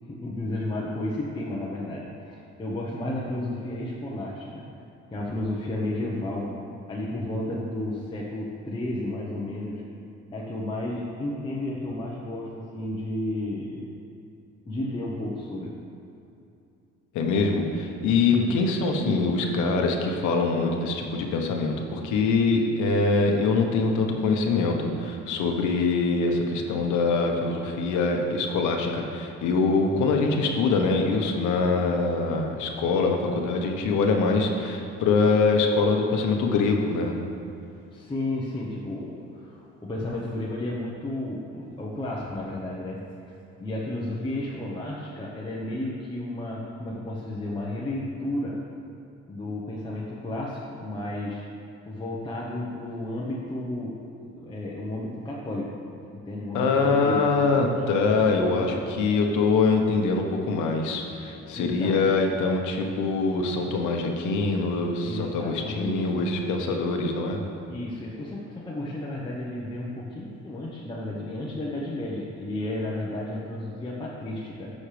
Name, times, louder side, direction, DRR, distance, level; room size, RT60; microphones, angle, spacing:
voice 1, 0.0-4.6 5.1-6.5 6.9-9.8 10.3-13.9 14.7-15.7 18.3-18.7 19.4-19.6 37.9-43.0 43.6-48.6 49.3-51.4 51.8-54.0 54.4-55.8 56.2-57.7 58.5-58.7 61.6-62.0 65.0-66.1 66.7-66.8 67.7-74.7, left 1 dB, 15° left, -6 dB, 1.0 m, -32 dB
voice 2, 17.1-37.2 56.5-67.4, left 4 dB, 90° left, 2 dB, 1.2 m, -24 dB
14.0 x 6.5 x 3.4 m, 2.6 s
cardioid pair, 125°, 29 cm